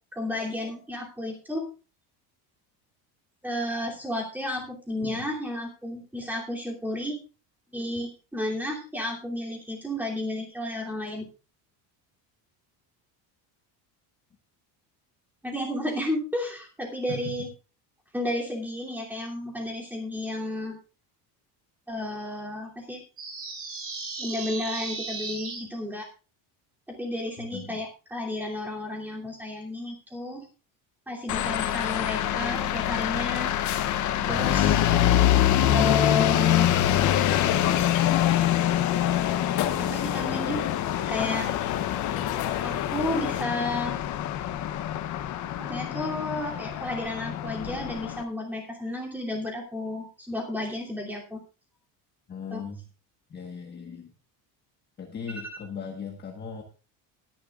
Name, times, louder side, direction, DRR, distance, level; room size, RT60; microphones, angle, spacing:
voice 1, 0.1-1.7 3.4-7.2 7.7-11.3 15.4-17.5 18.1-20.8 21.9-23.0 24.2-26.1 26.9-30.4 31.1-33.6 34.3-34.8 35.7-36.8 39.8-40.6 41.1-41.5 42.6-44.0 45.6-51.4 52.5-52.6, left 2 dB, 5° right, -1 dB, 2.9 m, -32 dB
sound 1, 23.2-25.6, right 4 dB, 30° right, 3.9 m, -35 dB
voice 2, 27.4-27.8 34.2-34.6 52.3-52.8 53.3-54.1 55.0-56.6, left 5 dB, 20° left, 2 dB, 1.3 m, -38 dB
sound 2, 31.3-48.2, left 11 dB, 40° left, 0.8 m, -25 dB
sound 3, 37.0-43.4, left 11 dB, 55° left, 1.4 m, -32 dB
20.0 x 10.5 x 2.4 m, 0.32 s
cardioid pair, 175°, 45 cm